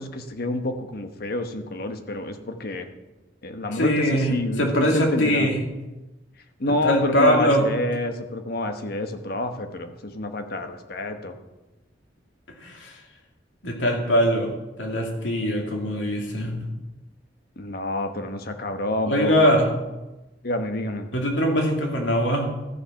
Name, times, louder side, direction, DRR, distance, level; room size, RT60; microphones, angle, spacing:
voice 1, 0.0-2.9 3.4-5.5 6.6-11.3 17.6-19.5 20.4-21.1, left 2 dB, 55° left, 7 dB, 1.1 m, -28 dB
voice 2, 3.7-5.6 6.7-7.6 12.6-12.9 13.6-14.5 14.8-16.7 19.0-19.7 21.1-22.5, equal, 85° left, 1 dB, 2.5 m, -22 dB
14.0 x 7.3 x 5.8 m, 1.1 s
head